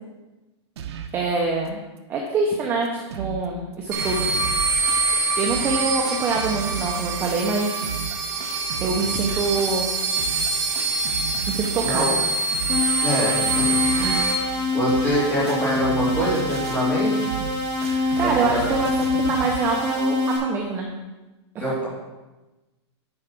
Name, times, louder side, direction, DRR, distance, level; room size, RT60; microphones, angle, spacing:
sound 1, 0.8-1.2 1.7-1.8 2.0-2.1 2.6-2.7 2.8-3.5 3.7-19.6, right 7 dB, 65° right, 1.0 m, -35 dB
voice 1, 1.1-1.8 2.1-4.3 5.4-7.9 8.8-9.9 11.5-12.2 17.8-20.9, right 3 dB, 15° right, 0 dB, 0.6 m, -25 dB
sound 2, 3.9-14.3, right 3 dB, 40° right, 1.4 m, -25 dB
voice 2, 11.8-12.2 13.0-14.4 14.7-17.3 18.2-18.7 21.6-21.9, equal, 10° left, -8 dB, 3.1 m, -25 dB
sound 3, 12.7-20.4, left 2 dB, 30° left, 2.2 m, -25 dB
9.7 x 4.5 x 5.9 m, 1.1 s
supercardioid pair, 170°, 15 cm